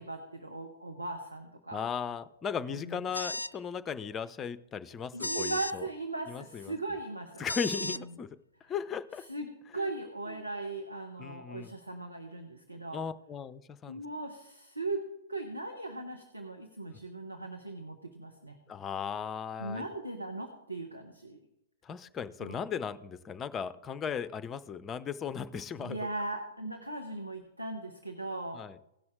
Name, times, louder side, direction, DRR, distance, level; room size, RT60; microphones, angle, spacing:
voice 1, 0.0-1.9 2.7-3.0 5.1-7.5 7.8-8.1 8.7-8.8 9.3-9.5 9.7-13.0 13.9-15.0 15.3-18.6 19.6-21.4 22.4-22.7 25.8-28.6, right 2 dB, 90° right, 4 dB, 1.2 m, -39 dB
voice 2, 1.7-5.9 6.3-6.7 7.4-8.3 8.7-9.2 9.7-9.9 11.2-11.7 12.9-14.0 18.7-19.9 21.8-26.0 28.5-28.8, left 7 dB, 20° left, 14 dB, 0.6 m, -37 dB
sound 1, 3.1-3.6 5.2-5.8 7.5-8.0, left 2 dB, 85° left, 0.3 m, -35 dB
17.0 x 6.0 x 3.8 m, 0.84 s
figure-of-eight pair, 105°, 0 cm